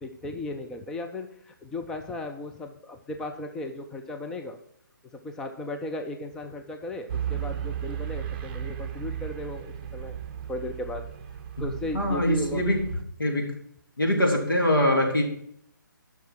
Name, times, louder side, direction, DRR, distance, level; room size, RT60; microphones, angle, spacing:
voice 1, 0.0-4.6 5.1-10.2 10.5-11.0 11.6-12.6, left 2 dB, 5° left, 5 dB, 0.4 m, -36 dB
sound 1, 7.1-13.0, right 9 dB, 30° right, 0.7 m, -35 dB
voice 2, 11.9-12.8 13.2-13.5 14.0-15.2, left 1 dB, 85° left, 0 dB, 2.8 m, -23 dB
11.5 x 5.9 x 4.5 m, 0.67 s
figure-of-eight pair, 145°, 11 cm